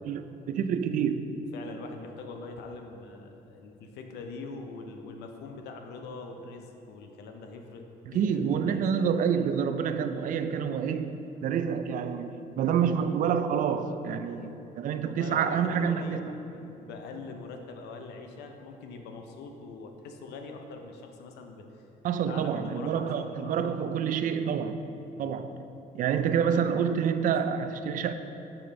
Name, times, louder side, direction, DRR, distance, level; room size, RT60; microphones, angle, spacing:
voice 1, 0.0-1.2 8.1-16.2 22.0-24.8 25.2-25.6 25.9-28.1, right 7 dB, 55° right, 0.4 m, -28 dB
voice 2, 1.5-7.8 8.1-8.8 12.4-12.9 14.3-14.5 15.0-21.8 22.3-23.6 25.2-25.4, left 3 dB, 80° left, 0.7 m, -43 dB
6.9 x 5.2 x 3.3 m
cardioid pair, 110°, 17 cm